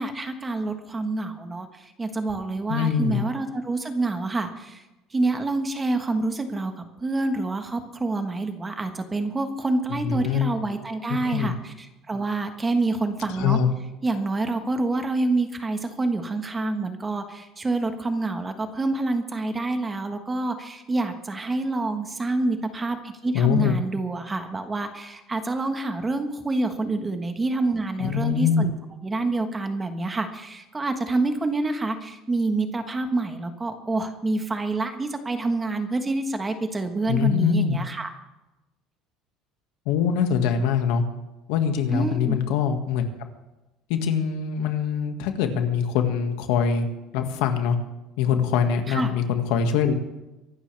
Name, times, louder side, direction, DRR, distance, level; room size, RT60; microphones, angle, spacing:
voice 1, 0.0-4.8 5.1-13.6 14.0-28.7 29.0-38.1 41.9-42.4 48.9-49.1, right 2 dB, 15° right, 7 dB, 1.4 m, -27 dB
voice 2, 2.7-3.3 10.0-10.6 11.2-11.5 13.4-13.7 23.3-23.8 28.0-28.7 37.1-37.8 39.9-41.0 41.5-43.1 43.9-46.9 47.1-47.8 48.2-49.9, left 7 dB, 85° left, 6 dB, 1.9 m, -23 dB
24.0 x 12.0 x 3.5 m, 1.0 s
cardioid pair, 150°, 0 cm